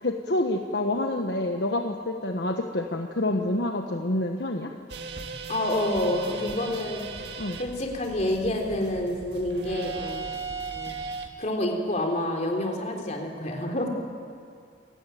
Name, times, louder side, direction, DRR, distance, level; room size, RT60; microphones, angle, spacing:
voice 1, 0.0-4.7 7.4-7.6, left 1 dB, 65° left, 3 dB, 1.3 m, -27 dB
sound 1, 4.9-11.3, right 4 dB, 65° right, 1.8 m, -37 dB
voice 2, 5.5-7.0 7.6-10.3 10.7-10.9 11.4-13.9, left 1 dB, 40° left, 2 dB, 3.4 m, -28 dB
27.5 x 17.0 x 9.2 m, 2.3 s
head